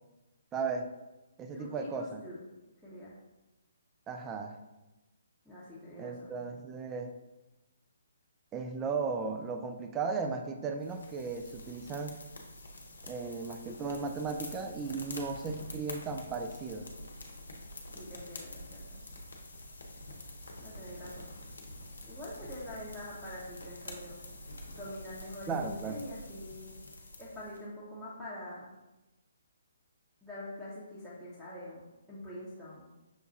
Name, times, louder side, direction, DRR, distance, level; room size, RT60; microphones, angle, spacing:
voice 1, 0.5-0.9 1.4-2.2 4.1-4.6 6.0-7.1 8.5-12.2 13.0-16.9 25.5-26.0, right 4 dB, 15° right, 6 dB, 0.3 m, -36 dB
voice 2, 1.5-2.4 2.8-3.1 5.4-6.3 17.9-19.0 20.6-21.3 22.1-24.2 24.7-26.7 27.2-28.7 30.2-32.9, left 1 dB, ahead, -13 dB, 0.8 m, -45 dB
sound 1, 10.8-27.6, left 1 dB, 70° left, 0.7 m, -47 dB
6.2 x 2.3 x 2.7 m, 1.0 s
figure-of-eight pair, 135°, 0 cm